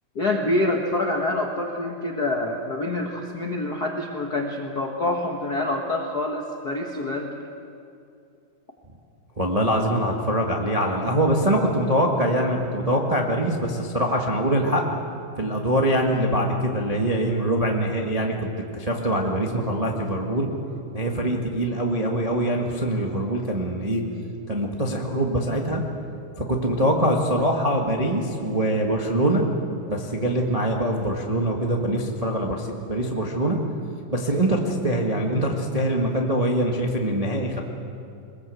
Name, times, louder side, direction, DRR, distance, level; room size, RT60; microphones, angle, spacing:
voice 1, 0.1-7.3, left 2 dB, 70° left, 1 dB, 0.9 m, -26 dB
voice 2, 9.4-14.8 15.4-18.3 18.7-20.5 20.9-24.0 24.5-25.8 26.4-29.5 29.9-33.6 34.1-37.6, right 1 dB, 75° right, 0 dB, 0.3 m, -23 dB
22.5 x 20.5 x 7.9 m, 2.6 s
omnidirectional pair, 4.0 m